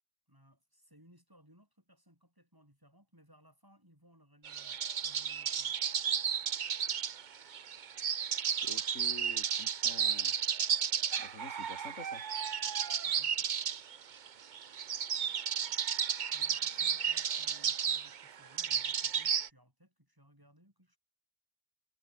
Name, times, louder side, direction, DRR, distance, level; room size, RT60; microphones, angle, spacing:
voice 1, 0.3-5.8 13.0-13.5 16.3-21.0, equal, 15° right, 7.7 m, -63 dB
sound 1, 4.4-19.5, right 8 dB, 45° right, 0.8 m, -33 dB
voice 2, 8.6-10.3 11.2-12.2, left 3 dB, 80° left, 3.2 m, -48 dB
omnidirectional pair, 1.3 m